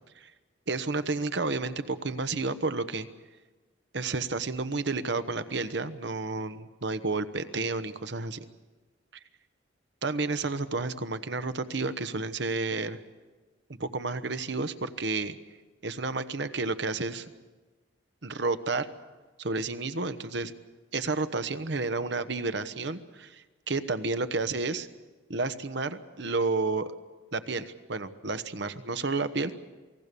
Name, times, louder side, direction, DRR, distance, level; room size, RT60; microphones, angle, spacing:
voice 1, 0.7-3.1 3.9-8.4 10.0-13.0 13.8-15.4 15.8-17.3 18.2-18.9 19.4-20.5 20.9-24.9 25.3-26.9 27.3-29.5, right 3 dB, 65° right, 11 dB, 1.1 m, -31 dB
28.5 x 19.5 x 6.9 m, 1.3 s
head